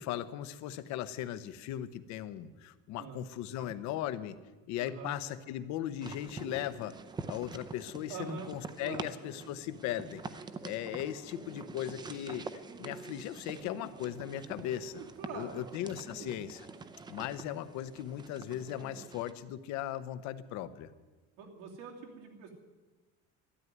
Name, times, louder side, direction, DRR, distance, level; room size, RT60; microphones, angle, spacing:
voice 1, 0.0-4.4 4.7-7.0 7.3-12.5 12.8-15.0 15.3-16.6 17.1-20.9, left 11 dB, 60° left, 13 dB, 0.9 m, -38 dB
voice 2, 4.8-5.1 8.1-8.5 8.8-9.1 14.9-15.7 16.1-16.4 21.4-22.5, right 6 dB, 90° right, 1 dB, 3.1 m, -44 dB
sound 1, 6.0-19.3, right 4 dB, 15° right, 0.5 m, -46 dB
13.0 x 11.0 x 9.3 m, 1.3 s
cardioid pair, 175°, 31 cm